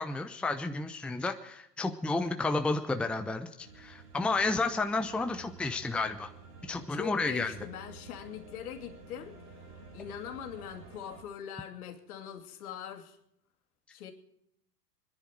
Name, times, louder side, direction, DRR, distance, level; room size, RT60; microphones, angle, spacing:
voice 1, 0.0-6.3 6.7-7.5, left 3 dB, ahead, 6 dB, 0.8 m, -31 dB
sound 1, 3.6-11.2, right 4 dB, 70° right, 5.4 m, -51 dB
voice 2, 6.9-13.2 13.9-14.1, left 9 dB, 60° left, 5 dB, 2.8 m, -42 dB
25.0 x 10.5 x 4.6 m, 0.75 s
figure-of-eight pair, 95°, 48 cm